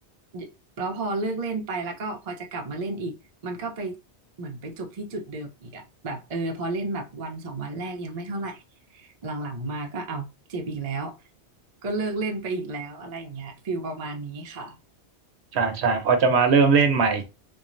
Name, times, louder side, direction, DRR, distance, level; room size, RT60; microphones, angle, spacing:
voice 1, 0.8-3.1 3.4-3.9 4.4-8.6 8.9-11.2 11.8-14.8, right 2 dB, 45° right, 0.6 m, -32 dB
voice 2, 15.5-17.3, right 5 dB, 70° right, 0.9 m, -20 dB
3.0 x 2.2 x 2.4 m
omnidirectional pair, 1.1 m